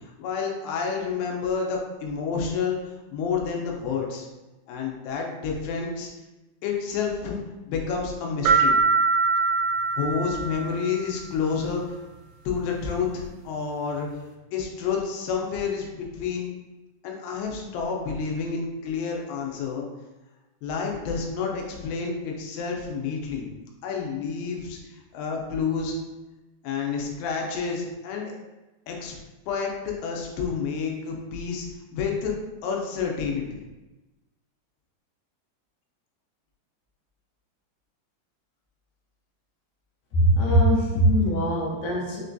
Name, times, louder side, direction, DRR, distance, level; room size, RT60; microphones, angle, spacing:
voice 1, 0.2-2.8 3.1-4.3 4.7-6.1 6.6-7.4 7.7-8.7 10.0-11.8 12.5-14.1 14.5-16.5 17.0-19.9 20.6-23.5 23.8-26.0 26.6-28.3 28.9-29.2 29.5-31.7 31.9-32.3 32.6-33.6, left 5 dB, 90° left, 0 dB, 2.9 m, -29 dB
sound 1, 8.5-11.1, right 4 dB, 90° right, 2.8 m, -23 dB
voice 2, 40.1-42.2, right 1 dB, 70° left, -4 dB, 2.5 m, -21 dB
6.4 x 2.2 x 2.5 m, 1.1 s
omnidirectional pair, 4.9 m